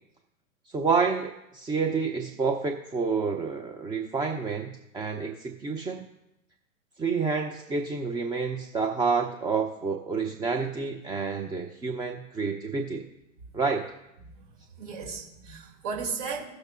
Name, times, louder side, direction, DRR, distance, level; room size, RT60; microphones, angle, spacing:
voice 1, 0.7-6.0 7.0-13.0 13.5-13.8, right 5 dB, 10° right, 2 dB, 0.5 m, -29 dB
voice 2, 14.2-16.4, right 5 dB, 60° right, -1 dB, 2.6 m, -36 dB
16.0 x 6.3 x 2.4 m, 0.88 s
hypercardioid pair, 110°, 41 cm